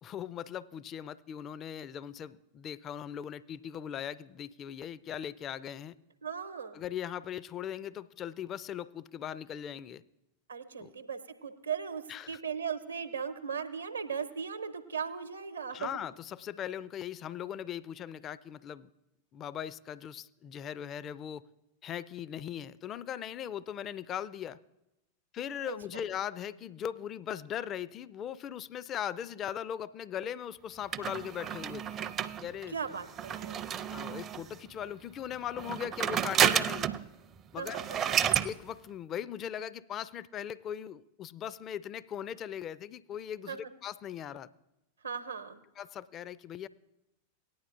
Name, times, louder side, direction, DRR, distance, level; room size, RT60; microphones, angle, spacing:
voice 1, 0.0-6.0 6.7-10.0 10.8-10.9 12.1-12.4 15.7-18.9 19.3-21.5 21.8-24.6 25.3-32.0 32.4-32.8 33.9-36.9 37.5-37.8 38.4-44.5 45.8-46.7, left 9 dB, 30° left, 18 dB, 0.4 m, -39 dB
voice 2, 6.2-6.8 10.5-15.9 25.6-26.0 32.7-33.6 37.6-38.2 43.5-43.7 45.0-45.6, right 6 dB, 75° right, 9 dB, 0.9 m, -38 dB
sound 1, 30.9-34.6 35.5-37.1 37.4-37.5 37.7-38.5, right 9 dB, 30° right, 0.5 m, -30 dB
18.0 x 10.0 x 2.5 m, 0.92 s
figure-of-eight pair, 90°, 0 cm